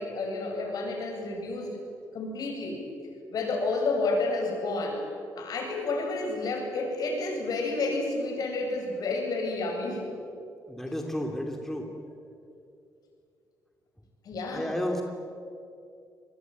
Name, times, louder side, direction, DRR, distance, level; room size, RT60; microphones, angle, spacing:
voice 1, 0.0-1.8 2.1-2.8 3.3-5.0 5.4-10.0 14.2-14.7, left 3 dB, 65° left, 2 dB, 8.0 m, -30 dB
voice 2, 10.7-11.9 14.5-15.0, equal, 5° left, 2 dB, 2.8 m, -32 dB
26.0 x 21.5 x 9.5 m, 2.5 s
cardioid pair, 115°, 7 cm